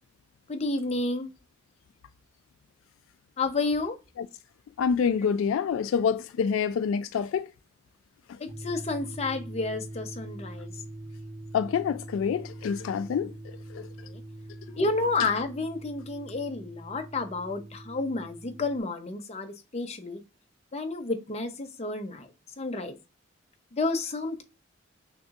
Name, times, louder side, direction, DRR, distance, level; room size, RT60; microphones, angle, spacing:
voice 1, 0.5-1.3 3.4-4.0 8.4-10.7 14.1-14.2 14.8-20.2 20.7-22.3 22.6-22.9 23.7-24.4, left 3 dB, 30° left, 0.6 m, -30 dB
voice 2, 4.8-7.5 11.5-13.3 13.7-13.8, left 6 dB, 80° left, 0.3 m, -26 dB
sound 1, 8.5-18.8, right 1 dB, 35° right, 0.8 m, -43 dB
6.0 x 2.6 x 2.4 m
head